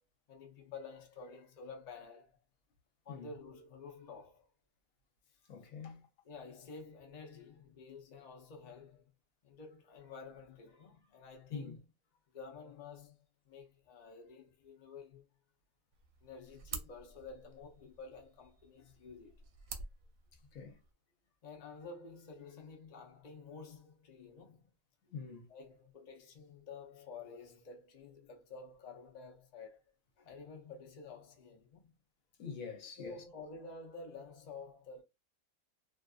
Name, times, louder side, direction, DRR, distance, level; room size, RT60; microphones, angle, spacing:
voice 1, 0.3-2.4 3.0-4.5 5.3-5.4 6.2-9.1 9.4-11.8 12.3-15.3 16.2-19.5 21.4-24.7 25.5-29.8 30.2-31.9 33.0-35.0, left 4 dB, 40° left, 0.6 m, -51 dB
voice 2, 5.5-6.1 11.5-11.8 20.5-20.8 25.1-25.5 32.4-33.2, left 5 dB, 80° left, 1.1 m, -45 dB
sound 1, 15.9-20.9, right 5 dB, 75° right, 0.9 m, -50 dB
2.6 x 2.4 x 2.3 m
omnidirectional pair, 1.4 m